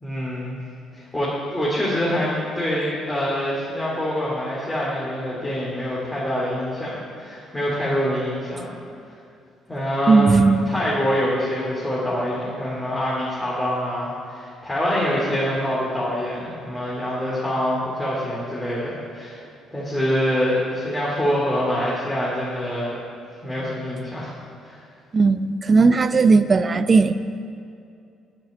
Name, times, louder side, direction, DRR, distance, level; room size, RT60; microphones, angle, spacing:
voice 1, 0.0-0.6 1.1-8.7 9.7-10.4 10.6-19.4 19.7-23.0 23.4-24.3 24.6-24.8, equal, 15° left, -7 dB, 2.6 m, -25 dB
voice 2, 10.1-10.6 25.1-27.1, right 4 dB, 30° right, 11 dB, 0.5 m, -16 dB
9.4 x 7.6 x 8.5 m, 2.5 s
cardioid pair, 120°, 0 cm